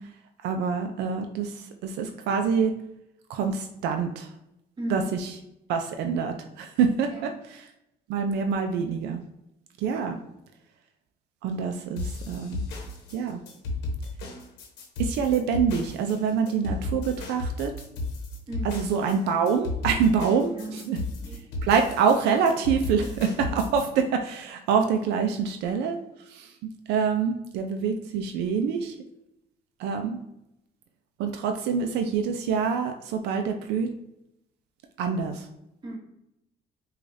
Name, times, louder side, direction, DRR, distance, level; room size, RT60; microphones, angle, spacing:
voice 1, 0.4-2.7 3.3-4.3 4.9-5.3 5.7-7.3 8.1-9.2 9.8-10.2 11.4-12.6 13.1-13.4 15.0-17.7 18.6-21.0 21.6-26.0 26.3-26.5 26.9-28.9 29.8-30.2 31.2-33.9 35.0-35.5, right 6 dB, 85° right, 5 dB, 0.4 m, -26 dB
voice 2, 4.8-5.1 7.1-7.4 18.5-19.0 20.4-21.4 35.8-36.0, right 1 dB, 25° right, -2 dB, 1.3 m, -36 dB
sound 1, 12.0-23.9, left 2 dB, 85° left, 1.0 m, -34 dB
4.8 x 2.4 x 2.6 m, 0.84 s
cardioid pair, 110°, 17 cm